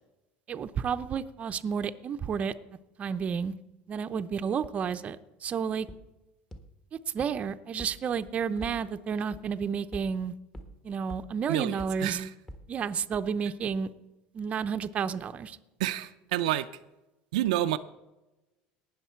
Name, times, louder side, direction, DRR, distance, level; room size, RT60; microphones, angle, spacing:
voice 1, 0.5-2.5 3.0-3.5 3.9-5.9 7.1-10.3 10.8-12.3 12.7-13.9 14.3-15.6, right 6 dB, 35° right, 0.7 m, -31 dB
sound 1, 5.9-6.0 6.5-6.6 7.2-7.3 7.8-7.9 8.3-8.7 9.3-9.4 9.9-10.0 10.5-10.6 11.1-11.2 11.8-11.9 12.5-12.6 13.1-13.2, equal, 15° left, 1.6 m, -41 dB
voice 2, 11.5-12.3 15.8-16.7 17.3-17.8, right 14 dB, 90° right, 0.5 m, -29 dB
18.5 x 6.5 x 4.5 m
supercardioid pair, 110°, 4 cm